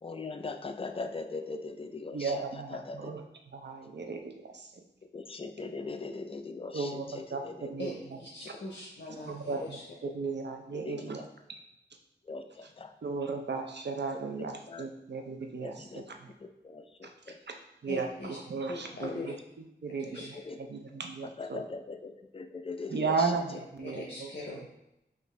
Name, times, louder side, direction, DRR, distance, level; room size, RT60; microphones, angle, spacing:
voice 1, 0.0-3.1 5.1-7.7 8.4-8.5 9.6-9.7 10.0-10.1 10.7-11.3 12.2-12.9 14.7-14.9 15.6-17.4 19.0-19.3 20.2-20.7 21.2-23.6, left 3 dB, 30° left, 7 dB, 0.3 m, -41 dB
voice 2, 2.1-3.2 3.5-4.7 6.7-8.0 9.3-11.2 13.0-16.0 17.0-17.1 17.5-17.6 17.8-19.3 19.8-21.6 22.9-24.3, right 4 dB, 65° right, 4 dB, 0.5 m, -35 dB
voice 3, 8.2-9.8 17.9-18.4 18.7-19.3 20.0-20.4 23.8-24.7, left 1 dB, 65° left, -4 dB, 0.6 m, -41 dB
5.0 x 2.5 x 3.2 m, 0.86 s
wide cardioid pair, 65°, 19 cm